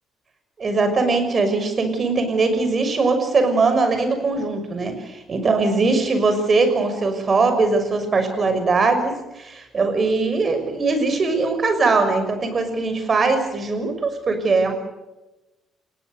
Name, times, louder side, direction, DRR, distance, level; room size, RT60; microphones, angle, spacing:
voice 1, 0.6-14.7, right 3 dB, 45° right, 7 dB, 6.2 m, -21 dB
29.5 x 18.5 x 6.8 m, 1.0 s
hypercardioid pair, 45°, 0 cm